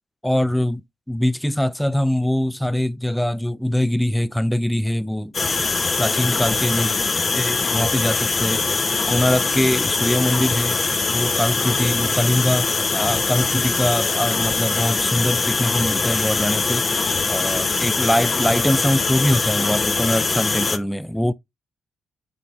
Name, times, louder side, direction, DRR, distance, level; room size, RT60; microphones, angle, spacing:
voice 1, 0.2-5.3 6.0-7.0 7.3-8.8 9.1-10.8 11.1-16.8 17.3-21.3, left 1 dB, 5° left, 0.5 m, -22 dB
sound 1, 5.3-20.8, left 4 dB, 40° left, 1.3 m, -22 dB
8.7 x 3.2 x 3.9 m
supercardioid pair, 60°, 0 cm